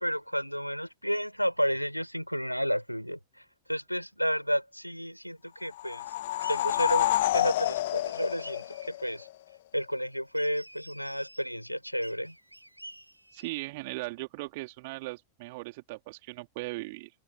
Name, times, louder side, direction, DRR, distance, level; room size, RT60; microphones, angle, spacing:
voice 1, 0.0-6.1 6.5-7.1 7.3-9.3 9.7-12.4, equal, 90° left, 7.3 m, -31 dB
sound 1, 5.7-9.3, left 15 dB, 55° left, 1.8 m, -28 dB
sound 2, 6.4-7.5 8.1-9.0 10.3-11.5 12.0-13.7, right 1 dB, 85° right, 6.2 m, -50 dB
voice 2, 13.3-17.1, right 23 dB, 50° right, 4.1 m, -38 dB
figure-of-eight pair, 90°, 0 cm